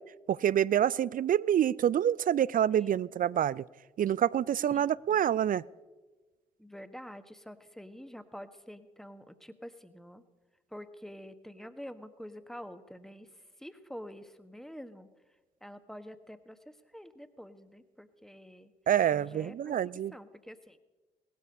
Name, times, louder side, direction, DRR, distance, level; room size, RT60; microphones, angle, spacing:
voice 1, 0.3-3.6 4.0-5.6 18.9-20.1, right 10 dB, 45° right, 22 dB, 0.4 m, -27 dB
voice 2, 2.8-3.1 4.7-5.2 6.6-10.2 10.7-13.3 13.6-15.1 15.6-16.6 16.9-18.7 19.1-19.7 20.1-20.8, equal, ahead, 10 dB, 1.4 m, -47 dB
18.0 x 13.0 x 5.4 m, 1.2 s
hypercardioid pair, 45°, 20 cm